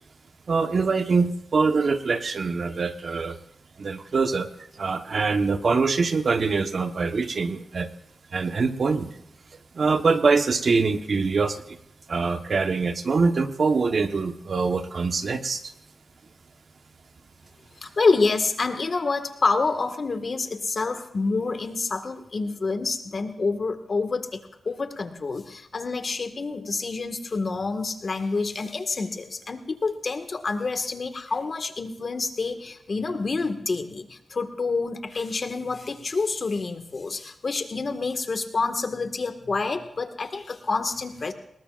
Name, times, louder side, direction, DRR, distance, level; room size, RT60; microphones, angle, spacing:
voice 1, 0.5-3.4 3.8-7.9 8.3-9.2 9.7-11.8 12.1-15.7, right 4 dB, 65° right, 7 dB, 1.2 m, -24 dB
voice 2, 17.8-24.4 24.6-41.3, left 4 dB, 55° left, 6 dB, 1.8 m, -27 dB
26.5 x 20.0 x 2.5 m, 0.76 s
wide cardioid pair, 80°, 0 cm